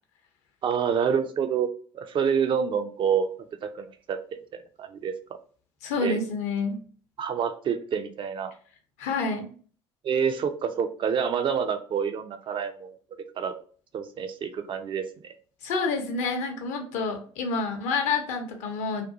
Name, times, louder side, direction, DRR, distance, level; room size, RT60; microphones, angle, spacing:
voice 1, 0.6-1.7 1.9-3.3 3.6-4.2 4.8-5.1 6.0-6.2 7.2-8.5 10.0-12.9 13.4-13.5 13.9-15.3, right 7 dB, 35° right, 8 dB, 0.3 m, -27 dB
voice 2, 5.8-6.8 9.0-9.5 15.6-19.0, left 4 dB, 55° left, 5 dB, 0.6 m, -28 dB
2.5 x 2.3 x 2.6 m, 0.43 s
figure-of-eight pair, 55°, 14 cm